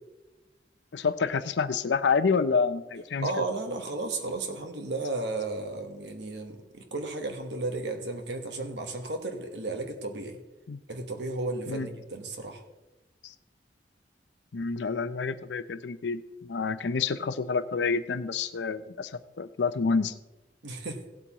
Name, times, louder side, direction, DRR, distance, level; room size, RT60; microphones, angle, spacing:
voice 1, 0.9-3.4 10.7-10.8 11.7-11.9 13.2-13.3 14.5-19.1 19.4-20.1, left 5 dB, 70° left, 12 dB, 0.5 m, -28 dB
voice 2, 3.2-10.4 10.9-12.6 20.6-21.0, right 2 dB, 70° right, 5 dB, 1.3 m, -34 dB
17.0 x 8.3 x 3.0 m, 1.1 s
head